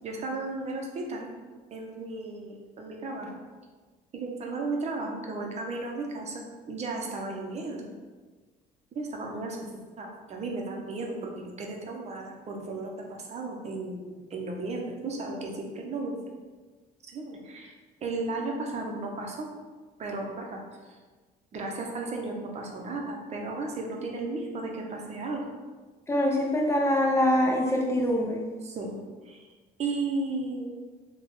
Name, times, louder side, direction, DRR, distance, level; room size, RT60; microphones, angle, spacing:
voice 1, 0.0-1.3 1.7-3.4 4.1-7.9 8.9-16.2 17.1-17.7 18.0-19.5 20.0-20.6 21.5-25.5 28.6-29.0 29.3-29.4 29.8-30.8, right 3 dB, 40° right, 1 dB, 0.7 m, -34 dB
voice 2, 26.1-28.4, left 1 dB, 15° left, 0 dB, 0.6 m, -24 dB
3.5 x 2.3 x 3.8 m, 1.4 s
cardioid pair, 110°, 17 cm